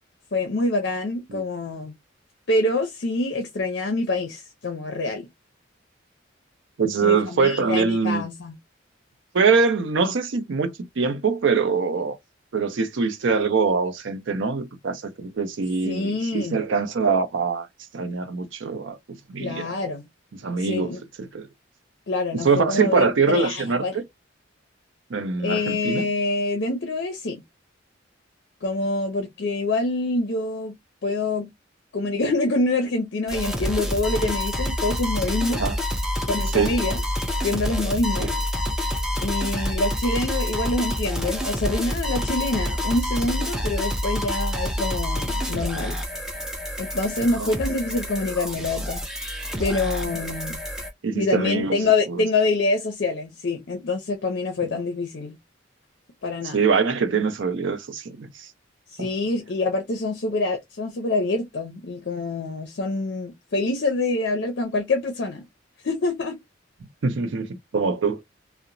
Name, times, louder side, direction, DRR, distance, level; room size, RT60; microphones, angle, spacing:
voice 1, 0.3-1.9 2.5-5.3 7.0-8.6 15.8-16.6 19.4-20.0 20.6-21.0 22.1-23.9 25.4-27.4 28.6-30.7 31.0-31.5 31.9-35.6 36.3-37.0 37.4-38.3 39.2-46.0 46.8-49.0 49.6-50.6 51.1-55.4 56.2-56.6 58.9-65.4 65.8-66.4, left 2 dB, 60° left, 0.5 m, -26 dB
voice 2, 6.8-8.3 9.3-12.2 12.5-17.7 17.9-19.7 20.4-21.5 22.3-24.0 25.1-26.1 35.6-35.8 36.5-36.7 38.2-38.3 47.4-47.5 50.3-50.4 51.0-52.2 56.5-58.5 59.0-59.1 67.0-68.2, right 4 dB, 75° right, 0.5 m, -23 dB
sound 1, 33.3-50.9, left 1 dB, 5° right, 0.5 m, -27 dB
2.8 x 2.0 x 2.5 m
head